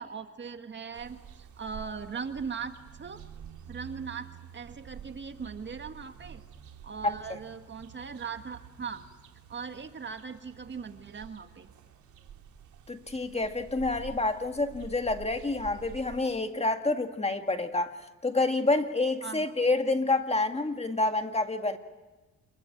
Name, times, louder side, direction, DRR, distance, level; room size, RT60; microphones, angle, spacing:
voice 1, 0.0-3.2 3.7-6.4 6.8-9.1 9.5-11.7 19.2-19.5, right 6 dB, 40° right, 7 dB, 1.8 m, -39 dB
sound 1, 0.9-16.2, right 8 dB, 70° right, 3.3 m, -49 dB
voice 2, 12.9-18.0 18.2-21.8, left 2 dB, 20° left, 6 dB, 2.0 m, -28 dB
26.5 x 22.0 x 8.7 m, 1.2 s
cardioid pair, 90°, 30 cm